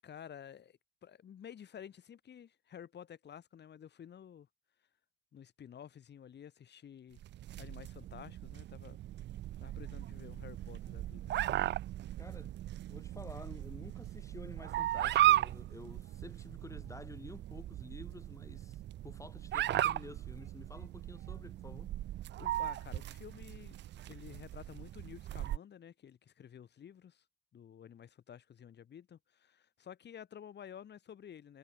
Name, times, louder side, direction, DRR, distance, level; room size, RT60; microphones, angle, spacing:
voice 1, 0.0-4.5 5.3-7.2 7.6-9.0 9.6-11.4 22.4-23.8 24.1-27.2 27.5-31.6, left 9 dB, 60° left, 6.6 m, -52 dB
sound 1, 7.2-25.6, right 13 dB, 60° right, 0.5 m, -36 dB
voice 2, 12.2-12.6 12.9-21.9, left 2 dB, 15° left, 3.8 m, -51 dB
cardioid pair, 90°, 20 cm